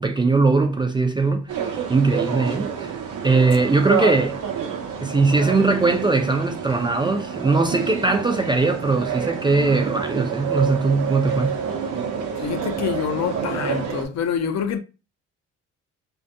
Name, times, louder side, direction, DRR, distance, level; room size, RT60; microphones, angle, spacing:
voice 1, 0.0-2.9 3.2-4.4 5.0-11.6, right 3 dB, 15° right, 0.3 m, -20 dB
sound 1, 1.5-14.1, right 7 dB, 80° right, 0.7 m, -28 dB
voice 2, 12.4-14.8, left 7 dB, 60° left, 0.5 m, -26 dB
2.5 x 2.3 x 2.5 m
cardioid pair, 90°, 30 cm